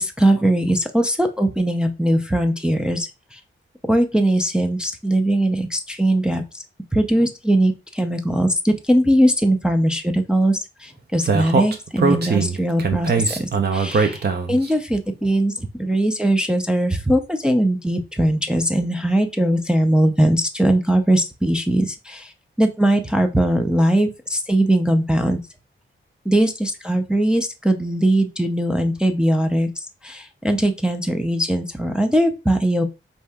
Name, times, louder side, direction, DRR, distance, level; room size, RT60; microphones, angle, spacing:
voice 1, 0.0-3.4 3.9-6.6 6.9-22.3 22.6-25.4 26.3-32.8, right 1 dB, 5° right, 4 dB, 0.4 m, -20 dB
Speech, 11.3-14.7, right 5 dB, 50° right, 0.7 m, -20 dB
4.4 x 2.7 x 3.4 m, 0.27 s
wide cardioid pair, 130°, 21 cm